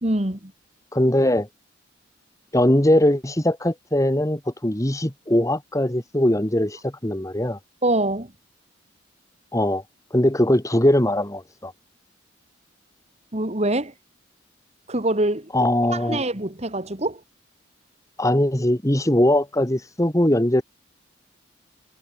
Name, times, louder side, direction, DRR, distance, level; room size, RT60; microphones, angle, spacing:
voice 1, 0.0-0.5 7.8-8.3 13.3-13.9 14.9-15.5 15.9-17.2, right 1 dB, 35° right, 2.5 m, -24 dB
voice 2, 0.9-1.5 2.5-7.6 9.5-9.8 10.1-11.7 15.5-16.2 18.2-20.6, left 1 dB, 15° left, 1.6 m, -20 dB
head